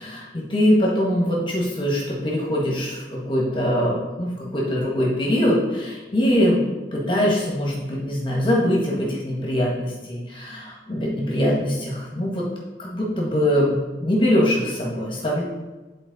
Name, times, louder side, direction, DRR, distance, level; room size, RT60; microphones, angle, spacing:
voice 1, 0.0-12.4 12.8-15.4, equal, 30° left, -3 dB, 1.4 m, -22 dB
9.2 x 4.2 x 4.0 m, 1.2 s
head